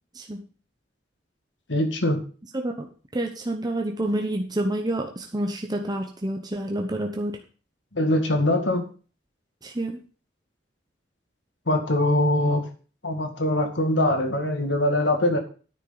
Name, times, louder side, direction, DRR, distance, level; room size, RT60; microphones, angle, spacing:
voice 1, 0.1-0.5 2.5-7.4 9.6-10.0, right 1 dB, 25° right, 3 dB, 1.0 m, -28 dB
voice 2, 1.7-2.2 7.9-8.9 11.7-12.6 13.0-15.4, left 1 dB, 85° left, 5 dB, 2.1 m, -22 dB
9.7 x 9.6 x 4.0 m, 0.39 s
head